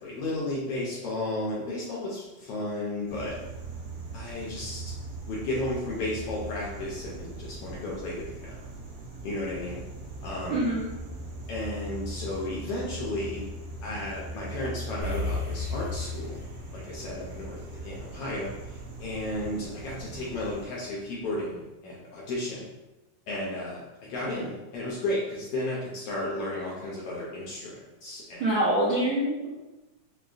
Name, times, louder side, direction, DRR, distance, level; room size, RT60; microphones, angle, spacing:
voice 1, 0.0-3.3 4.1-4.8 5.3-8.2 8.4-8.5 9.2-9.8 10.2-10.6 11.5-13.4 13.8-16.4 16.7-17.6 17.8-18.5 19.0-22.6 23.3-27.8 28.0-28.4, left 1 dB, 80° left, -5 dB, 1.4 m, -33 dB
sound 1, 3.1-20.7, right 2 dB, 65° right, 1.4 m, -40 dB
voice 2, 10.5-10.9 28.4-29.5, right 1 dB, 85° right, -8 dB, 1.1 m, -25 dB
sound 2, 15.0-19.5, left 2 dB, 50° right, 0.8 m, -36 dB
6.4 x 2.2 x 2.4 m, 1.1 s
omnidirectional pair, 3.4 m